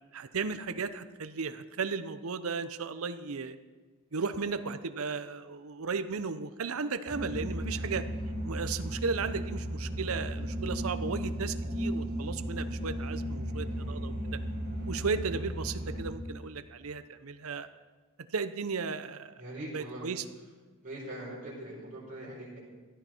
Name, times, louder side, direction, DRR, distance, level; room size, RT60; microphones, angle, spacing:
voice 1, 0.1-3.6 4.1-8.0 8.4-14.4 14.9-17.7 18.3-19.3 19.7-20.2, right 5 dB, 90° right, 11 dB, 0.7 m, -35 dB
sound 1, 7.1-16.0, equal, 55° right, 5.0 m, -35 dB
voice 2, 19.4-20.1 20.8-22.6, right 1 dB, 40° right, -7 dB, 4.8 m, -42 dB
16.5 x 12.5 x 4.4 m, 1.4 s
head